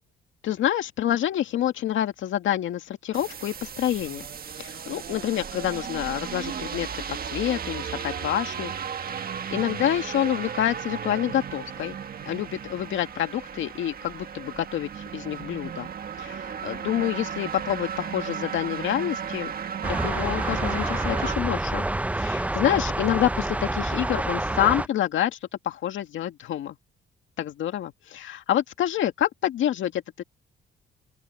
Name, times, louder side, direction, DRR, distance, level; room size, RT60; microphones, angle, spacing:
voice 1, 0.4-4.3 4.6-8.7 9.5-12.0 12.3-15.9 16.2-19.5 20.0-21.8 22.2-25.4 25.6-26.8 27.4-30.2, left 11 dB, 75° left, 2.2 m, -27 dB
sound 1, 3.1-21.4, right 7 dB, 50° right, 1.6 m, -35 dB
sound 2, 19.8-24.9, right 1 dB, 5° right, 0.5 m, -28 dB
open air
cardioid pair, 90°, 20 cm